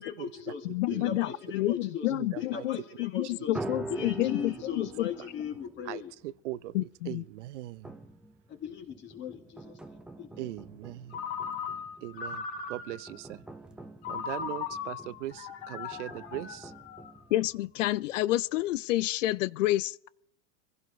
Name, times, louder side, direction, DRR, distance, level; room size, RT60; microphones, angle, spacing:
voice 1, 0.0-3.6 3.9-6.1 8.5-10.5, left 7 dB, 30° left, 2.3 m, -39 dB
voice 2, 0.7-5.1 6.7-7.2 17.3-20.1, left 16 dB, 80° left, 0.5 m, -29 dB
voice 3, 2.1-2.7 3.9-4.1 5.2-5.3 5.8-7.9 10.4-11.2 12.0-13.4 14.1-16.7, right 15 dB, 70° right, 0.7 m, -40 dB
sound 1, 3.5-6.5 7.8-18.2 18.7-18.8 19.0-19.2, right 2 dB, ahead, 0.5 m, -45 dB
Ringtone, 11.1-13.2 14.0-17.4, left 6 dB, 65° left, 3.7 m, -38 dB
25.5 x 16.0 x 3.2 m
supercardioid pair, 145°, 37 cm